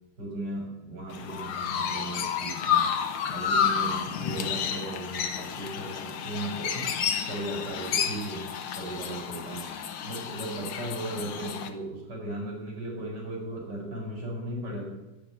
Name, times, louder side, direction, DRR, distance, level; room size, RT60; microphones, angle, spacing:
voice 1, 0.2-3.0 3.3-7.0 7.2-9.7 10.0-15.0, right 1 dB, 55° right, 0 dB, 5.1 m, -36 dB
Chirp tweet, 1.1-11.7, left 7 dB, 85° left, 1.9 m, -30 dB
12.0 x 9.2 x 8.9 m, 1.0 s
omnidirectional pair, 2.3 m